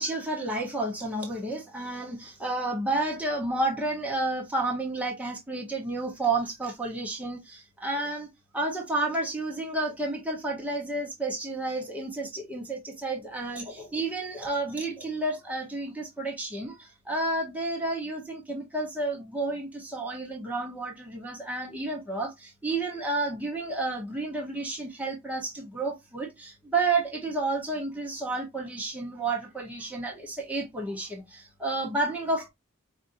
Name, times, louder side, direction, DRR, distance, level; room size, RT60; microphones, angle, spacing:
voice 1, 0.0-8.3 8.5-32.5, right 2 dB, 5° right, 1.0 m, -31 dB
5.2 x 2.5 x 2.6 m
head